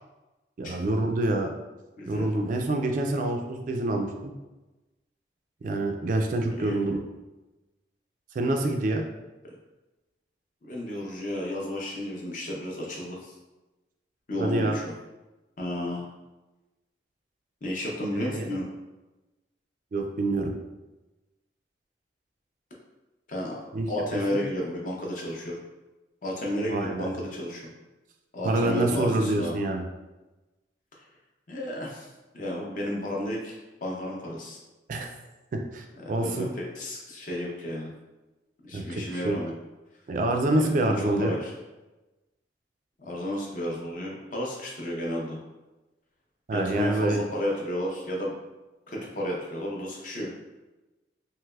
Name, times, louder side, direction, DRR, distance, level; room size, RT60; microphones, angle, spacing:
voice 1, 0.6-1.5 2.1-4.3 5.6-7.0 8.3-9.0 14.4-14.8 18.1-18.5 19.9-20.5 23.7-23.9 24.3-24.4 26.7-27.1 28.4-29.8 34.9-35.1 35.5-36.5 38.7-39.4 40.1-41.4 46.5-47.2, right 2 dB, 45° right, 3 dB, 0.3 m, -26 dB
voice 2, 2.0-2.3 6.6-6.8 9.4-9.6 10.6-13.3 14.3-14.9 15.6-16.0 17.6-18.7 23.3-23.6 23.9-25.6 26.2-27.7 28.3-29.6 31.5-32.1 32.3-34.6 36.0-37.9 38.6-39.5 40.6-41.5 43.0-45.4 46.5-48.3 48.9-50.3, left 1 dB, 45° left, -2 dB, 0.6 m, -32 dB
3.2 x 2.9 x 2.3 m, 1.1 s
head